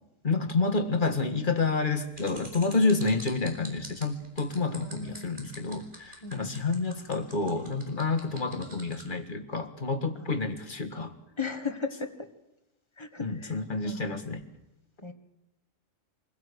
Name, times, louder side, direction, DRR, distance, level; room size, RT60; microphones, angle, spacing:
voice 1, 0.2-11.1 13.2-14.4, left 3 dB, 40° left, 5 dB, 1.9 m, -29 dB
sound 1, 2.1-9.1, right 1 dB, 40° right, 4.6 m, -46 dB
voice 2, 4.8-5.4 6.2-6.5 11.4-12.3 13.0-13.6 13.8-14.2 15.0-15.1, left 4 dB, 20° left, 7 dB, 1.6 m, -36 dB
24.5 x 16.5 x 8.3 m, 0.96 s
omnidirectional pair, 1.4 m